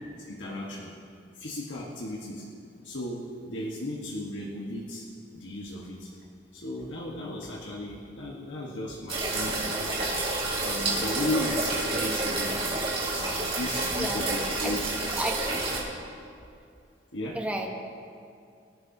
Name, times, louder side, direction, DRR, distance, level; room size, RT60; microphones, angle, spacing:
voice 1, 0.1-0.9 1.3-2.5 2.8-5.0 5.3-6.1 6.5-10.1 10.6-12.6 13.1-14.8 15.5-15.6 17.1-17.4, left 1 dB, 90° left, -3 dB, 1.4 m, -35 dB
sound 1, 9.1-15.8, right 2 dB, 35° right, 3.6 m, -29 dB
voice 2, 14.6-15.5 17.3-17.7, right 1 dB, 5° right, 1 dB, 1.1 m, -32 dB
24.0 x 10.5 x 2.8 m, 2.4 s
head